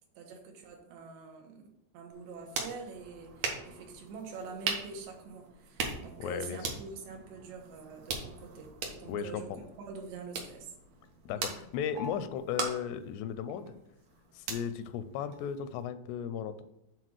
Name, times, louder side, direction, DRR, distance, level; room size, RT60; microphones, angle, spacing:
voice 1, 0.2-1.6 1.9-9.5 9.9-10.7 11.3-11.5, right 4 dB, 85° right, 1 dB, 3.5 m, -45 dB
sound 1, 2.1-15.8, right 4 dB, 70° right, 1.6 m, -41 dB
voice 2, 6.2-6.6 9.1-9.4 11.3-13.7 14.3-16.6, left 8 dB, 85° left, 12 dB, 2.6 m, -35 dB
8.3 x 3.9 x 6.3 m, 0.83 s
omnidirectional pair, 4.9 m